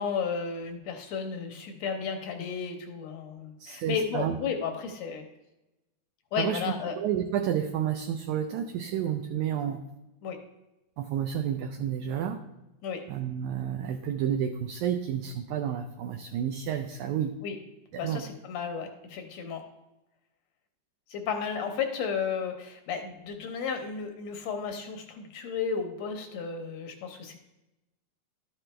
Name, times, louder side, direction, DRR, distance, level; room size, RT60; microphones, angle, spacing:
voice 1, 0.0-5.2 6.3-6.9 10.2-10.4 12.8-13.0 17.4-17.6 18.0-19.6 21.1-27.4, left 6 dB, 70° left, 5 dB, 1.7 m, -33 dB
voice 2, 3.6-4.4 6.4-6.6 7.0-9.8 11.0-12.4 13.1-17.3 17.9-18.2, right 9 dB, 80° right, 6 dB, 1.7 m, -30 dB
12.5 x 5.9 x 3.3 m, 0.96 s
omnidirectional pair, 3.9 m